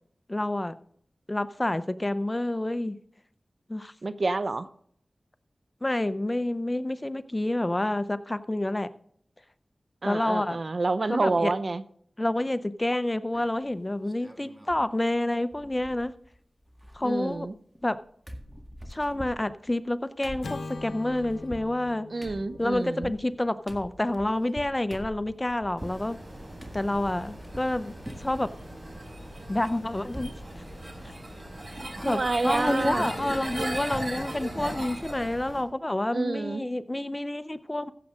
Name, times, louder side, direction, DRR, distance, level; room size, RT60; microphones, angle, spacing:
voice 1, 0.3-0.7 1.3-3.0 3.7-3.9 5.8-8.9 10.0-10.6 11.1-11.5 12.2-16.1 16.9-17.5 17.8-18.0 18.9-22.1 22.6-26.2 26.7-27.9 28.2-28.5 29.5-30.3 31.0-31.1 32.0-37.9, left 1 dB, 25° left, 0.6 m, -28 dB
voice 2, 4.0-4.7 10.0-11.8 17.0-17.5 22.1-23.1 32.0-33.1 36.1-36.6, right 3 dB, 65° right, 0.6 m, -28 dB
sound 1, 13.3-13.7 14.1-14.9 15.1-15.2 15.5-16.4 16.6-18.0 18.3-26.0 26.6-27.8 28.1-28.5 28.9-30.5 30.8-30.9 31.2-31.4, equal, 5° right, 1.8 m, -45 dB
Acoustic guitar / Strum, 20.4-24.8, left 3 dB, 90° left, 0.9 m, -43 dB
sound 2, 25.8-35.6, right 1 dB, 40° right, 5.0 m, -38 dB
15.0 x 7.5 x 3.7 m
cardioid pair, 40°, 0 cm